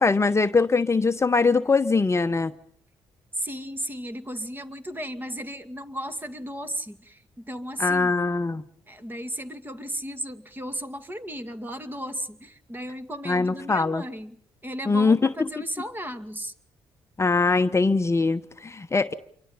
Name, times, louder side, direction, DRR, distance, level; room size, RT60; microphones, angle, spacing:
voice 1, 0.0-2.5 7.8-8.6 13.3-14.0 14.9-15.2 17.2-19.1, left 4 dB, 25° left, 9 dB, 1.0 m, -22 dB
voice 2, 3.3-8.1 8.9-14.4 14.6-16.5, equal, 20° right, 9 dB, 2.3 m, -35 dB
28.0 x 24.0 x 5.6 m, 0.62 s
supercardioid pair, 55°, 10 cm